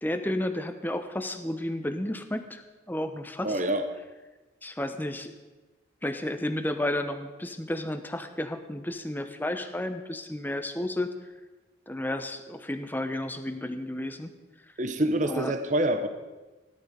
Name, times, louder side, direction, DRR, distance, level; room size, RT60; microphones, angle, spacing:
voice 1, 0.0-3.6 4.6-5.3 6.0-11.1 11.9-14.3 15.3-15.5, left 1 dB, 10° left, 8 dB, 0.9 m, -32 dB
voice 2, 3.4-3.9 14.8-16.1, right 1 dB, 40° right, 8 dB, 0.9 m, -26 dB
17.5 x 11.0 x 5.1 m, 1.2 s
head